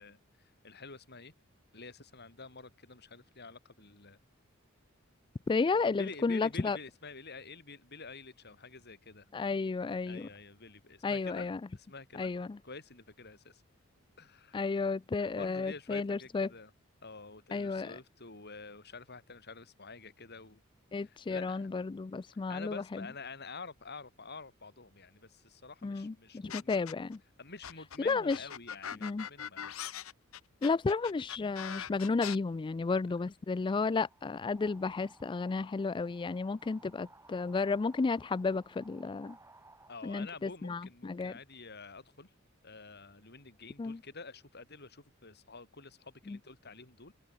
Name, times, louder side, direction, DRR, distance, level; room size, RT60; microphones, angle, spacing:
voice 1, 0.0-1.3 1.7-4.2 5.7-9.3 10.1-12.3 12.6-13.6 14.2-14.7 15.2-16.7 17.0-20.6 21.0-21.7 22.3-26.9 27.4-29.7 39.9-42.3 42.6-47.1, left 4 dB, 50° left, 7.7 m, -49 dB
voice 2, 5.5-6.8 9.3-10.3 11.0-11.6 12.2-12.6 14.5-16.5 17.5-17.9 20.9-23.0 25.8-27.2 28.1-28.4 29.0-29.3 30.6-39.4 40.0-41.3 43.8-44.0 46.3-46.4, left 4 dB, 25° left, 0.3 m, -32 dB
sound 1, 26.5-27.2 27.6-32.4, left 9 dB, 75° left, 1.0 m, -41 dB
sound 2, 34.1-40.0, right 2 dB, 15° right, 5.2 m, -59 dB
head